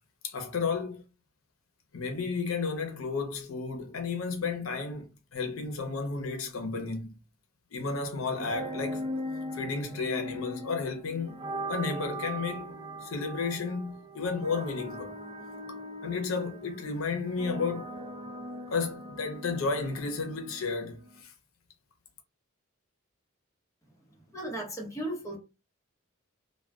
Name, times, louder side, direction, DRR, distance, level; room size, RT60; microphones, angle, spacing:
voice 1, 0.2-1.0 1.9-7.2 7.7-9.1 9.5-11.4 11.7-12.8 13.0-15.1 15.7-18.0 18.7-21.3, left 4 dB, 85° left, 0.7 m, -32 dB
sound 1, 8.3-21.2, equal, 30° right, 0.4 m, -40 dB
voice 2, 24.1-25.4, right 1 dB, 15° left, 1.0 m, -36 dB
2.3 x 2.2 x 3.5 m
head